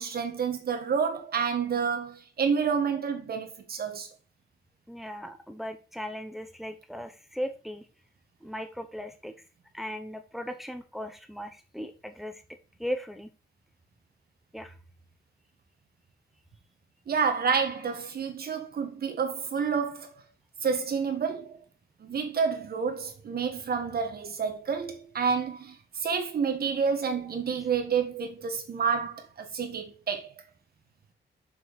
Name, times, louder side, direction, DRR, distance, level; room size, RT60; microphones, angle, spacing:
voice 1, 0.0-4.1 17.1-20.1 20.6-21.6 22.0-30.3, right 6 dB, 50° right, 1.5 m, -29 dB
voice 2, 4.9-7.9 8.4-9.3 9.7-12.4 12.8-13.3 14.5-14.8, equal, ahead, 0.9 m, -37 dB
7.2 x 5.9 x 4.1 m
wide cardioid pair, 160°, 19 cm